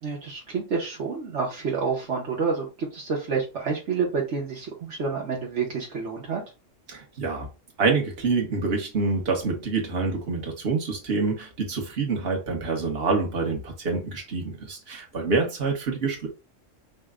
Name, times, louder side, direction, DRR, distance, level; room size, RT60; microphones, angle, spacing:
voice 1, 0.0-6.4, right 5 dB, 70° right, 1.4 m, -28 dB
voice 2, 6.9-7.5 7.8-16.3, right 4 dB, 50° right, 1.5 m, -26 dB
5.3 x 2.2 x 3.6 m
omnidirectional pair, 1.3 m